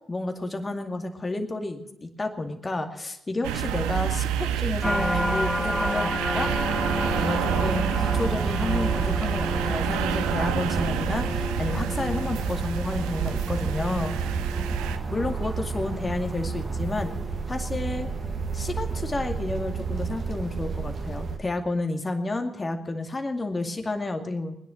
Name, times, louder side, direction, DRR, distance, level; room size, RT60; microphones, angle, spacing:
voice 1, 0.1-6.5 7.2-14.4 15.1-17.1 17.5-18.1 18.5-24.5, left 2 dB, 30° left, 4 dB, 2.3 m, -31 dB
sound 1, 3.4-15.0, right 10 dB, 80° right, 0.8 m, -29 dB
sound 2, 4.8-20.0 20.5-21.0, left 1 dB, 10° left, 2.7 m, -33 dB
sound 3, 6.4-21.4, right 4 dB, 55° right, 2.1 m, -31 dB
20.5 x 10.5 x 6.4 m, 0.81 s
hypercardioid pair, 40°, 0 cm